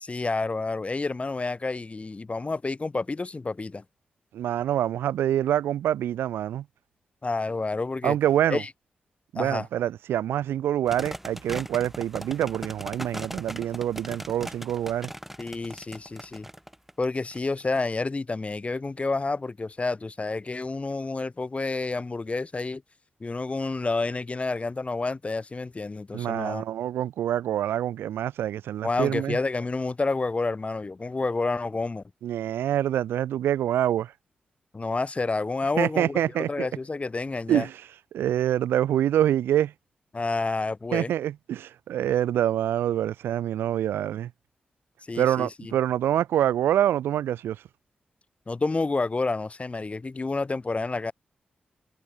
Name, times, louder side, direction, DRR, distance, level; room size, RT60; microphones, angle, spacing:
voice 1, 0.0-3.8 7.2-8.2 8.5-8.7 9.4-9.7 15.4-16.5 17.0-22.8 23.2-26.6 28.8-32.0 34.7-36.2 36.5-37.7 40.1-41.1 45.1-45.7 48.5-51.1, left 3 dB, 35° left, 0.8 m, -29 dB
voice 2, 4.3-6.6 8.0-8.6 9.3-15.1 26.1-29.4 32.2-34.1 35.8-36.7 37.5-37.7 38.1-39.7 40.9-44.3 45.1-47.6, right 11 dB, 85° right, 1.0 m, -26 dB
sound 1, 10.9-17.8, equal, 5° right, 3.6 m, -39 dB
supercardioid pair, 45°, 4 cm